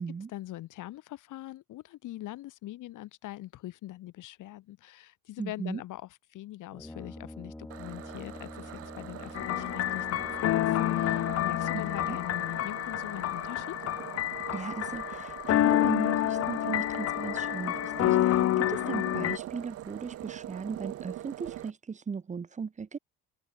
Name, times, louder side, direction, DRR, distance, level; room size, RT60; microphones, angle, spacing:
voice 1, 0.3-6.0 6.3-13.8, left 15 dB, 65° left, 2.9 m, -42 dB
voice 2, 5.4-5.8 11.7-12.2 14.5-23.0, right 5 dB, 20° right, 1.3 m, -37 dB
Brass instrument, 6.7-12.5, left 1 dB, 5° left, 2.1 m, -46 dB
sound 1, 7.7-21.7, right 13 dB, 45° right, 0.7 m, -43 dB
sound 2, 9.4-19.4, left 14 dB, 45° left, 0.7 m, -28 dB
cardioid pair, 120°, 34 cm